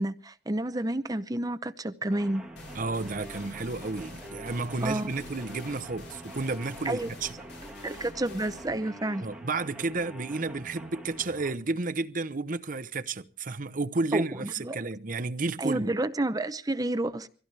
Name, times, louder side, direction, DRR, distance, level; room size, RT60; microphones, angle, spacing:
voice 1, 0.0-2.4 4.8-5.1 6.8-7.1 7.8-9.3 14.1-14.8 15.6-17.3, right 1 dB, 20° right, 0.8 m, -30 dB
sound 1, 2.1-11.5, right 1 dB, 5° right, 1.8 m, -45 dB
sound 2, 2.6-10.0, left 2 dB, 85° left, 5.1 m, -48 dB
voice 2, 2.7-7.4 9.2-16.0, right 3 dB, 50° right, 0.8 m, -32 dB
24.5 x 16.0 x 3.3 m
head